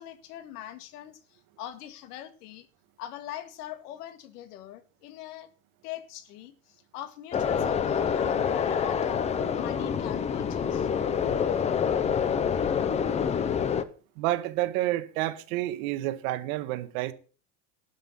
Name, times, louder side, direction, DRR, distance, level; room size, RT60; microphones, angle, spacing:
voice 1, 0.0-2.7 3.0-5.5 5.8-10.9, left 12 dB, 85° left, 2.0 m, -42 dB
sound 1, 7.3-13.8, left 7 dB, 15° left, 0.5 m, -27 dB
voice 2, 14.2-17.1, right 15 dB, 65° right, 1.5 m, -29 dB
12.5 x 5.7 x 8.4 m
supercardioid pair, 155°, 45 cm